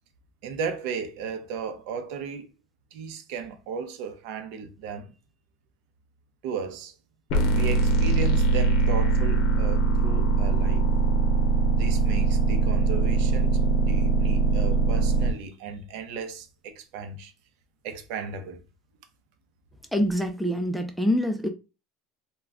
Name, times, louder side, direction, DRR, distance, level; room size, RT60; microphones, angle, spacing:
voice 1, 0.4-2.5 2.9-5.1 6.4-6.9 7.5-10.8 11.7-17.3 17.8-18.6, right 6 dB, 70° right, 0.6 m, -35 dB
sound 1, 7.3-15.3, right 3 dB, 65° left, 0.7 m, -22 dB
voice 2, 19.9-21.5, equal, ahead, 0.4 m, -25 dB
2.2 x 2.2 x 3.5 m
cardioid pair, 145°, 0 cm